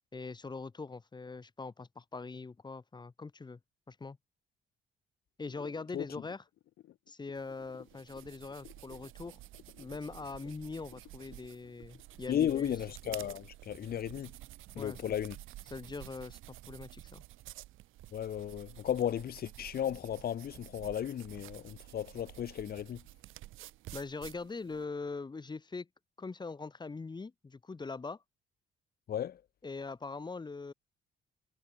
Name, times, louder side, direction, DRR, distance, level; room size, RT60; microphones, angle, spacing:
voice 1, 0.1-3.6 3.9-4.2 5.4-6.4 7.1-9.4 9.8-12.7 14.7-15.1 15.7-17.2 23.9-25.9 26.2-28.2 29.6-30.7, left 4 dB, 20° left, 0.9 m, -42 dB
sound 1, 5.5-13.2, left 13 dB, 80° left, 3.2 m, -57 dB
sound 2, 7.4-24.8, right 16 dB, 90° right, 2.4 m, -51 dB
voice 2, 12.3-14.3 14.7-15.4 18.1-23.0 29.1-29.4, left 10 dB, 50° left, 0.6 m, -35 dB
cardioid pair, 90°, 20 cm